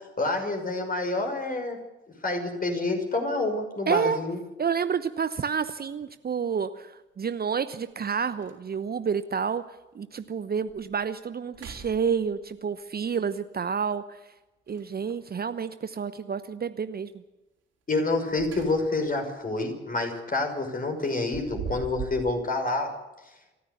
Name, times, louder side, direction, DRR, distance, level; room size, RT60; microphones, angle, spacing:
voice 1, 0.0-1.8 2.2-4.4 17.9-22.9, left 2 dB, 30° left, 4 dB, 5.9 m, -28 dB
voice 2, 3.9-4.2 4.6-9.6 9.9-14.2 14.7-17.1, right 6 dB, 35° right, 12 dB, 0.9 m, -29 dB
sound 1, 5.8-5.9 7.5-7.6 8.0-8.1 8.4-9.0 9.5-9.6 10.2-10.3 10.7-11.0 11.5-12.5 14.6-15.3 18.1-19.1 19.5-19.7 21.0-22.3, right 6 dB, 55° right, 4.4 m, -41 dB
27.5 x 14.5 x 7.1 m, 1.0 s
figure-of-eight pair, 45°, 29 cm